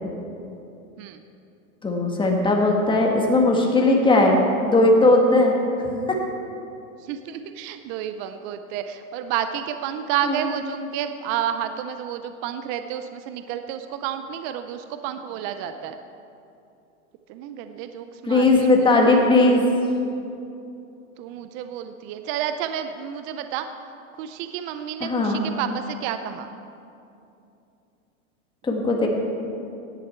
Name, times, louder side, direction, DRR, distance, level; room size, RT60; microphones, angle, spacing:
voice 1, 1.8-4.4 4.7-5.5 6.1-6.2 10.2-10.4 18.3-19.7 25.0-25.4 28.7-29.1, left 2 dB, 10° left, 0 dB, 1.7 m, -18 dB
voice 2, 7.0-16.0 17.3-19.7 21.2-23.7 24.2-26.5, right 9 dB, 30° right, 9 dB, 0.4 m, -31 dB
16.0 x 10.5 x 4.4 m, 2.7 s
hypercardioid pair, 130°, 42 cm